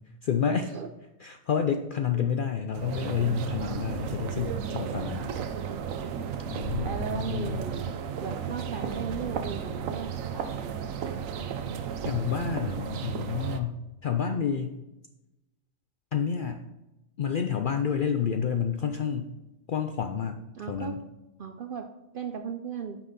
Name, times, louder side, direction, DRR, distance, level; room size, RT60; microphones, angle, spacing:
voice 1, 0.2-0.7 1.2-5.2 6.4-7.6 12.0-14.8 16.1-16.6 17.2-19.3 19.7-21.0, left 7 dB, 65° left, 6 dB, 0.5 m, -29 dB
sound 1, 2.7-13.6, right 7 dB, 85° right, 1.1 m, -34 dB
voice 2, 4.9-5.9 6.8-7.9 8.2-10.7 20.5-21.0 21.4-23.0, right 6 dB, 60° right, 7 dB, 0.5 m, -37 dB
9.0 x 5.8 x 4.0 m, 0.97 s
omnidirectional pair, 1.4 m